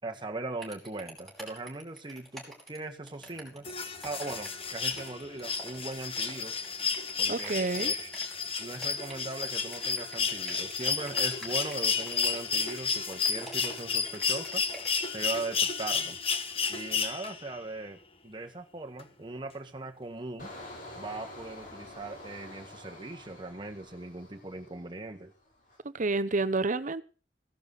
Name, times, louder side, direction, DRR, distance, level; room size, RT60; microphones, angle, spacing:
voice 1, 0.0-3.7 4.0-6.7 7.2-8.1 8.6-14.6 15.1-16.2 16.7-20.5 20.9-25.3, right 2 dB, 25° right, 1.6 m, -39 dB
sound 1, 0.6-15.2, right 1 dB, ahead, 5.2 m, -48 dB
sound 2, 3.6-17.6 19.0-19.1, left 5 dB, 30° left, 1.4 m, -32 dB
voice 2, 7.3-7.9 25.9-27.0, right 3 dB, 45° right, 0.9 m, -29 dB
Engine, 20.4-25.1 25.4-25.8, left 1 dB, 50° left, 7.8 m, -47 dB
16.0 x 11.5 x 4.0 m
head